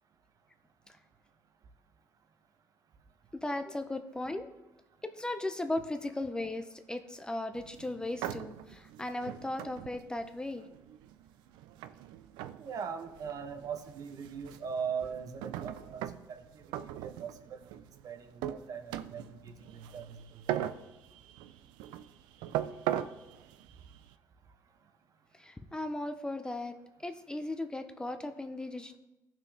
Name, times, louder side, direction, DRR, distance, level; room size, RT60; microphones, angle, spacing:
voice 1, 3.3-4.5 5.0-10.7 25.3-26.7 27.0-29.0, left 2 dB, 10° left, 8 dB, 0.6 m, -37 dB
sound 1, 7.5-24.1, right 12 dB, 90° right, 0.4 m, -41 dB
voice 2, 12.6-20.6, right 6 dB, 50° right, 8 dB, 0.9 m, -41 dB
15.0 x 6.0 x 3.3 m, 0.97 s
cardioid pair, 100°, 8 cm